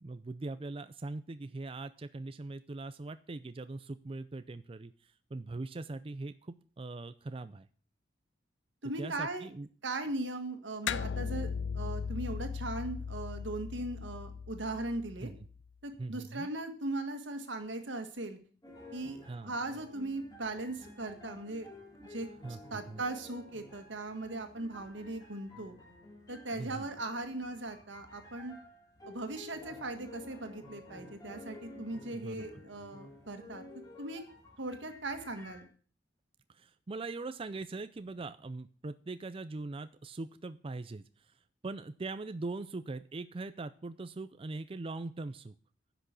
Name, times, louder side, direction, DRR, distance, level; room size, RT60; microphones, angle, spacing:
voice 1, 0.0-7.7 9.0-9.7 15.2-15.5 16.0-16.5 19.2-19.5 22.4-23.0 26.6-26.8 32.1-32.6 36.5-41.3 41.6-45.5, right 3 dB, 30° right, 12 dB, 0.4 m, -41 dB
voice 2, 8.8-9.5 9.8-11.5 11.7-15.3 15.8-18.4 18.9-21.7 22.0-22.3 22.7-25.7 26.3-28.5 29.1-33.6 34.0-34.2 34.6-35.7, right 2 dB, 85° right, 7 dB, 1.7 m, -39 dB
sound 1, 10.9-15.6, left 6 dB, 70° left, 0.4 m, -38 dB
sound 2, 18.6-35.6, left 2 dB, 20° left, 3.4 m, -52 dB
10.5 x 6.0 x 8.2 m, 0.43 s
head